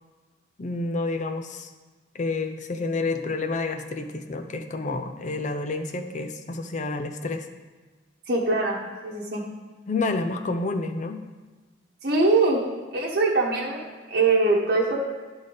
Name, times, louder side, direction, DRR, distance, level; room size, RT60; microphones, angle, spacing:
voice 1, 0.6-1.7 2.1-7.5 9.9-11.2, left 3 dB, 40° left, 7 dB, 0.5 m, -29 dB
voice 2, 8.3-8.8 9.0-9.4 12.0-12.6 12.9-15.0, right 3 dB, 55° right, -4 dB, 1.0 m, -22 dB
10.0 x 4.0 x 5.2 m, 1.3 s
head